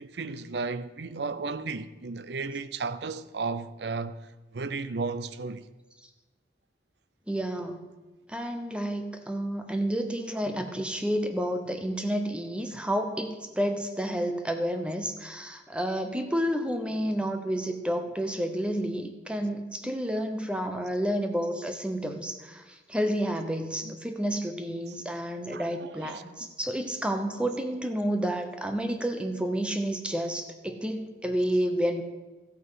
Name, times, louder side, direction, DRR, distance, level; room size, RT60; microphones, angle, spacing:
voice 1, 0.0-5.7 19.8-20.3 20.7-20.8 23.8-23.9 25.5-26.5, right 4 dB, 65° right, 0.6 m, -35 dB
voice 2, 7.3-7.9 8.3-32.0, equal, 5° right, 0.7 m, -30 dB
13.5 x 8.3 x 5.7 m
head